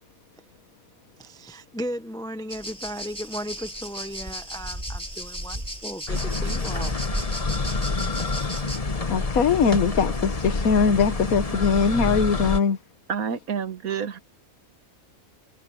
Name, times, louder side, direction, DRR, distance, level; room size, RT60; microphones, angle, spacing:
voice 1, 1.2-6.9, equal, 5° left, 0.5 m, -35 dB
sound 1, 2.5-8.8, equal, 20° right, 6.5 m, -35 dB
sound 2, 6.1-12.6, left 3 dB, 25° left, 1.2 m, -27 dB
voice 2, 9.1-12.8, left 6 dB, 75° left, 1.6 m, -21 dB
voice 3, 13.1-14.2, right 7 dB, 75° right, 1.7 m, -28 dB
omnidirectional pair, 1.5 m